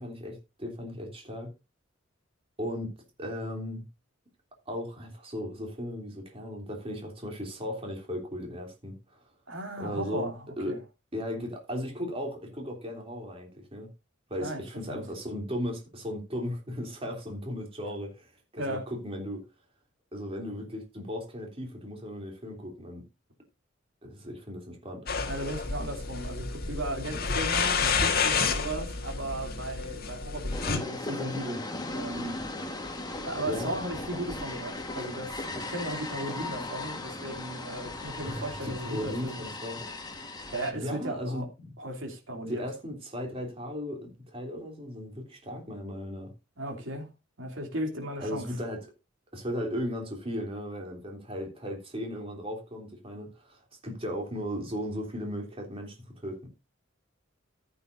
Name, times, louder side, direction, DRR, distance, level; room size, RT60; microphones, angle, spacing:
voice 1, 0.0-1.5 2.6-2.9 3.2-3.8 4.7-9.2 9.8-10.3 10.6-10.8 11.1-13.9 14.3-19.4 20.1-23.0 24.0-25.0 33.4-33.7 38.2-39.8 40.7-41.4 42.5-46.3 48.2-48.9 49.3-56.5, equal, 30° right, 3.2 m, -36 dB
voice 2, 9.5-10.8 14.4-14.6 14.9-15.0 18.6-18.9 25.2-32.4 33.2-39.5 40.3-41.5 41.8-42.6 46.6-47.1 47.4-48.5, right 1 dB, 65° right, 3.0 m, -36 dB
sound 1, 25.1-30.8, left 5 dB, 50° left, 1.6 m, -29 dB
sound 2, 30.5-40.7, left 2 dB, 20° left, 1.6 m, -37 dB
14.5 x 8.6 x 2.7 m
head